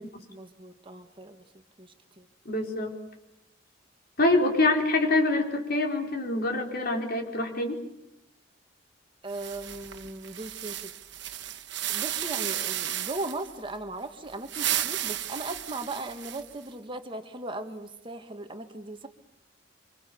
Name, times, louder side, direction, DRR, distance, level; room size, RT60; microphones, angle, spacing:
voice 1, 0.3-1.4 1.8-2.3 9.2-10.9 11.9-19.1, right 2 dB, 25° right, 6 dB, 1.7 m, -38 dB
voice 2, 2.4-2.9 4.2-7.8, left 2 dB, 55° left, 2 dB, 4.5 m, -25 dB
sound 1, 9.3-13.5 14.3-16.6, right 12 dB, 65° right, 1.5 m, -33 dB
26.5 x 26.0 x 7.0 m, 0.87 s
head